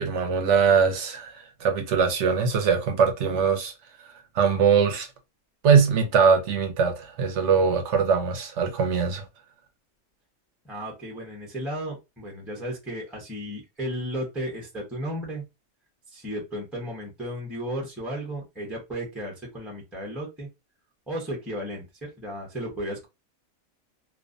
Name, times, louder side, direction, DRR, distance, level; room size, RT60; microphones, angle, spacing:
voice 1, 0.0-3.7 4.3-5.1 5.6-9.2, right 6 dB, 70° right, 0.8 m, -22 dB
voice 2, 10.6-15.4 16.1-20.5 21.1-23.1, equal, ahead, 0.5 m, -34 dB
2.4 x 2.1 x 2.4 m
omnidirectional pair, 1.4 m